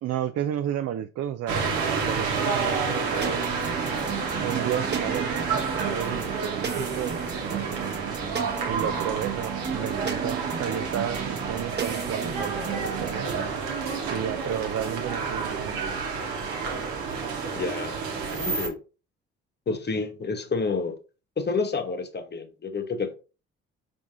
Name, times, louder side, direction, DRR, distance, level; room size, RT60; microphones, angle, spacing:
voice 1, 0.0-1.6 2.0-3.7 4.4-8.2 8.6-13.6 14.1-16.0, right 10 dB, 55° right, 0.4 m, -32 dB
sound 1, 1.5-18.7, right 5 dB, 80° right, 1.0 m, -30 dB
sound 2, 3.2-13.5, right 6 dB, 30° right, 1.0 m, -35 dB
voice 2, 17.5-18.0 18.3-18.8 19.7-21.0 21.4-23.1, left 4 dB, 30° left, 0.9 m, -29 dB
4.6 x 3.7 x 2.6 m
hypercardioid pair, 45°, 32 cm